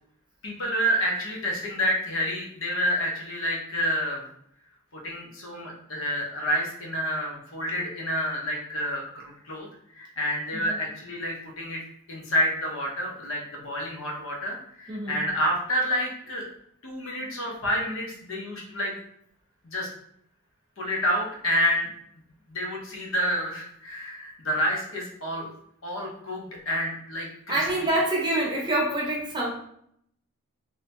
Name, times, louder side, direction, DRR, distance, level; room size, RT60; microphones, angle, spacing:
voice 1, 0.4-4.2 4.9-9.7 10.0-11.8 12.1-16.4 16.8-18.9 19.7-19.9 20.8-21.9 22.5-25.5 25.8-27.6, equal, 60° left, -1 dB, 0.8 m, -29 dB
voice 2, 14.9-15.3 27.5-29.5, right 1 dB, 20° right, -4 dB, 0.8 m, -26 dB
3.4 x 2.7 x 2.6 m, 0.70 s
head